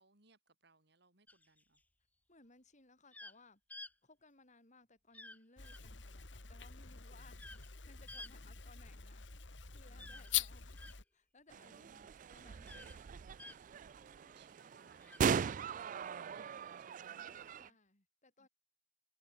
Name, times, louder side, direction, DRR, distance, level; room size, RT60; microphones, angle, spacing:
voice 1, 0.0-1.8 8.3-8.5 9.9-10.5 11.5-12.2 13.0-17.8 18.4-18.5, right 3 dB, 65° right, 5.4 m, -69 dB
sound 1, 1.3-1.8 3.1-3.4 3.7-3.9 5.1-5.4 5.6-5.8 7.4-7.7 8.1-8.3 10.0-11.0 12.6-13.0 13.4-13.6 15.0-15.2, left 2 dB, 10° left, 1.0 m, -52 dB
voice 2, 2.3-3.6 4.0-7.4 7.8-9.3 9.7-10.8 11.1-13.1 13.9-14.4 17.1-18.5, left 3 dB, 40° left, 7.9 m, -64 dB
sound 2, 5.6-11.0, left 11 dB, 75° left, 2.0 m, -43 dB
sound 3, 11.5-17.7, right 6 dB, 45° right, 0.3 m, -39 dB
head